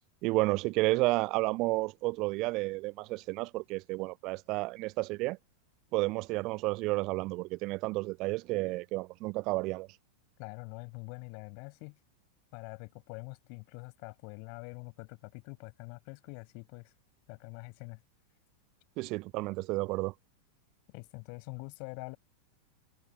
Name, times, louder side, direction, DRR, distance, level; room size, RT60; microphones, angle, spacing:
voice 1, 0.2-5.4 5.9-9.9 19.0-20.1, right 22 dB, 40° right, 0.4 m, -31 dB
voice 2, 10.4-12.0 12.5-16.9 17.3-18.0 20.9-22.2, left 40 dB or more, 45° left, 6.9 m, -45 dB
figure-of-eight pair, 90°, 0 cm